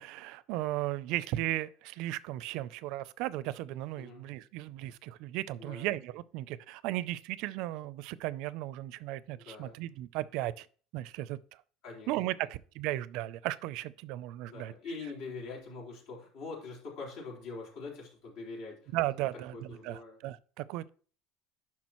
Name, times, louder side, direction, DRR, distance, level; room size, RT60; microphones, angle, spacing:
voice 1, 0.0-10.7 10.9-11.4 12.1-14.7 18.9-20.9, right 16 dB, 65° right, 0.4 m, -36 dB
voice 2, 9.4-9.8 11.8-12.1 12.4-12.5 14.5-18.9 19.5-20.2, left 3 dB, 75° left, 4.0 m, -43 dB
10.5 x 5.9 x 3.0 m
cardioid pair, 160°, 0 cm